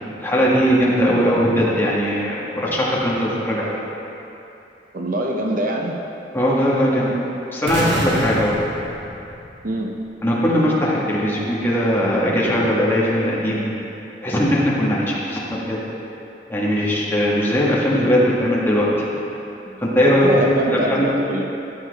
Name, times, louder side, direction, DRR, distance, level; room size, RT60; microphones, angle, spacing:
voice 1, 0.2-3.8 6.3-7.1 7.5-8.5 10.2-13.7 14.2-15.8 16.5-18.8 19.8-20.3 20.6-21.1, equal, 15° left, -6 dB, 1.6 m, -19 dB
voice 2, 4.9-6.0 9.6-9.9 19.7-19.8 20.2-21.4, right 1 dB, 50° right, 1 dB, 0.8 m, -24 dB
sound 1, 7.7-9.8, right 1 dB, 80° right, 2.0 m, -26 dB
13.5 x 7.5 x 3.5 m, 2.9 s
head